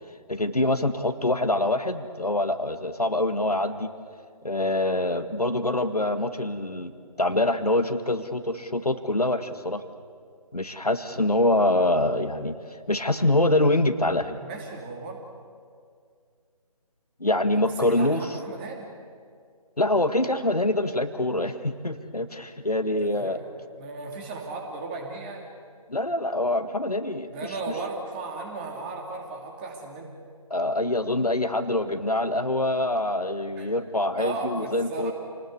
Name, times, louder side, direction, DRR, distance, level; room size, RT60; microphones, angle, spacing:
voice 1, 0.3-3.9 4.4-6.9 7.2-9.8 10.5-12.6 12.9-14.4 17.2-18.3 19.8-23.4 25.9-27.3 30.5-35.1, left 1 dB, 85° left, 9 dB, 1.8 m, -25 dB
voice 2, 14.4-15.2 17.8-18.9 22.7-23.5 23.8-25.5 27.3-30.1 33.6-33.7 34.2-35.1, right 3 dB, 15° right, 2 dB, 2.7 m, -36 dB
28.5 x 19.0 x 8.1 m, 2.2 s
figure-of-eight pair, 150°, 19 cm